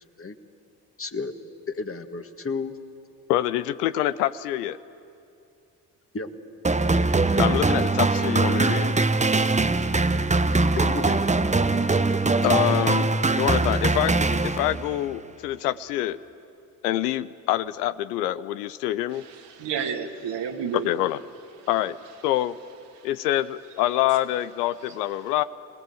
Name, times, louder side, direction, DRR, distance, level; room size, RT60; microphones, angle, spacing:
voice 1, 1.0-1.3 1.7-2.7 6.1-6.3 10.8-11.2, left 4 dB, 30° left, 1.8 m, -31 dB
voice 2, 3.3-4.8 7.4-8.9 12.4-13.1 13.4-14.2 14.4-16.2 16.8-19.2 20.8-21.2 21.7-22.0 22.2-22.5 23.0-25.4, left 14 dB, 85° left, 0.7 m, -25 dB
sound 1, 6.6-15.0, right 3 dB, 15° right, 1.0 m, -22 dB
voice 3, 19.1-20.9 23.0-23.1, right 7 dB, 60° right, 2.2 m, -31 dB
27.0 x 18.5 x 7.8 m
hypercardioid pair, 50°, 47 cm